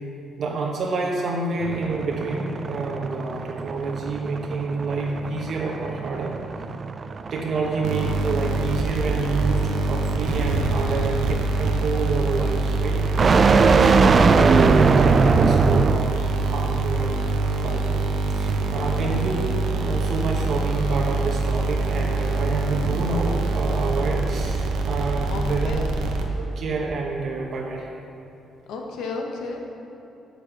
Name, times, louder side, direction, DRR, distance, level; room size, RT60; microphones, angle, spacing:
voice 1, 0.4-6.4 7.3-13.0 13.5-18.1 18.3-25.8 26.4-27.9, right 3 dB, 60° right, -1 dB, 1.1 m, -28 dB
sound 1, 1.6-16.2, right 4 dB, 40° right, 0.3 m, -22 dB
sound 2, 7.8-26.6, right 3 dB, 85° right, 0.7 m, -25 dB
voice 2, 25.3-25.9 28.7-29.7, left 3 dB, 85° left, 1 dB, 1.1 m, -33 dB
6.7 x 6.5 x 6.1 m, 2.8 s
cardioid pair, 90°, 0 cm